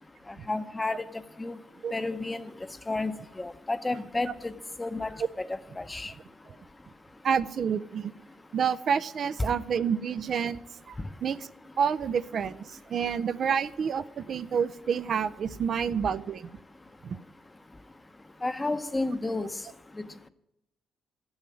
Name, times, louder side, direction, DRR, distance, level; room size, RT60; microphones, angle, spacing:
voice 1, 0.5-1.0 1.4-1.5 1.9-2.4 2.9-4.5 4.8-5.5 5.8-6.1 18.4-19.5 20.0-20.1, left 2 dB, 20° left, 12 dB, 0.8 m, -31 dB
voice 2, 7.2-8.1 8.5-10.6 10.9-11.0 11.2-11.5 11.8-16.5 17.0-17.2, right 7 dB, 55° right, 13 dB, 0.5 m, -28 dB
13.5 x 7.2 x 9.9 m, 0.85 s
cardioid pair, 90°, 0 cm